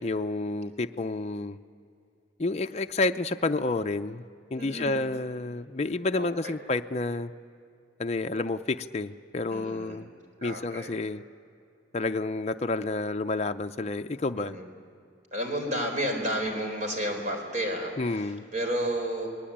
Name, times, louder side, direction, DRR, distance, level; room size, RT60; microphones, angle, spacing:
voice 1, 0.0-1.6 2.4-4.2 4.5-7.3 8.0-10.1 10.4-11.2 11.9-14.6 18.0-18.4, left 2 dB, 35° left, 7 dB, 0.5 m, -30 dB
voice 2, 4.5-5.0 6.1-6.6 9.5-10.0 10.4-11.0 14.4-14.7 15.3-19.3, equal, 40° right, 3 dB, 4.2 m, -32 dB
27.5 x 20.0 x 8.7 m, 2.5 s
head